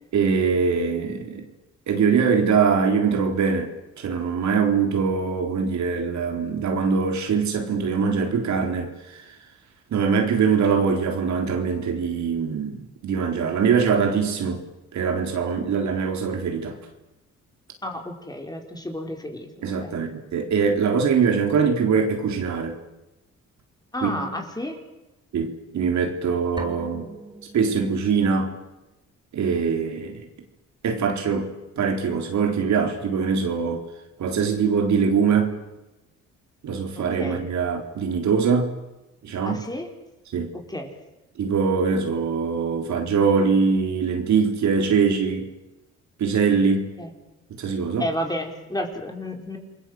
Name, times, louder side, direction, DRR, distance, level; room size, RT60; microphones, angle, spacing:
voice 1, 0.1-1.4 1.9-9.2 9.9-14.6 14.9-16.8 19.6-22.8 24.0-24.3 25.3-27.1 27.5-28.5 29.3-30.3 30.8-31.5 31.8-33.8 34.2-35.5 36.6-38.7 39.2-39.6 40.3-40.5 41.4-45.5 46.2-46.9 47.6-48.1, right 5 dB, 65° right, 4 dB, 4.1 m, -22 dB
voice 2, 17.8-19.5 19.8-20.0 23.9-24.8 37.0-37.4 39.4-39.9 40.5-40.9 47.0-47.1 48.0-49.6, left 1 dB, 15° left, 3 dB, 4.9 m, -31 dB
sound 1, 26.6-28.4, right 1 dB, 15° right, 3.8 m, -40 dB
29.0 x 21.5 x 7.9 m, 1.0 s
cardioid pair, 90°, 30 cm